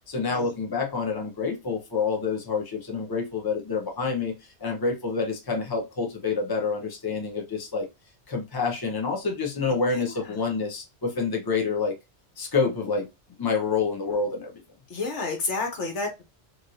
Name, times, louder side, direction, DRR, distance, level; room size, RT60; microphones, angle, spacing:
voice 1, 0.1-4.3 4.6-7.9 8.3-12.0 12.4-13.1 13.4-14.6, left 4 dB, 25° left, 0.7 m, -27 dB
voice 2, 9.9-10.4 14.9-16.2, left 3 dB, 85° left, 1.3 m, -31 dB
3.1 x 2.6 x 2.7 m
omnidirectional pair, 1.2 m